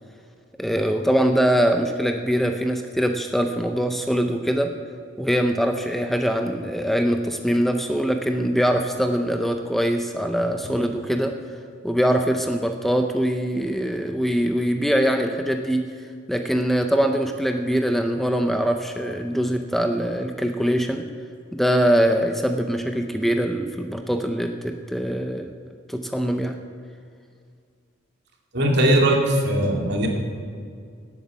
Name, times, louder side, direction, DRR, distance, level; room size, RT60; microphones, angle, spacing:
voice 1, 0.6-4.8 5.2-11.4 11.8-15.9 16.3-21.1 21.5-25.5 25.9-26.6, equal, ahead, 5 dB, 0.6 m, -23 dB
voice 2, 28.5-30.1, right 1 dB, 60° right, 0 dB, 2.3 m, -20 dB
17.5 x 8.3 x 6.3 m, 2.3 s
head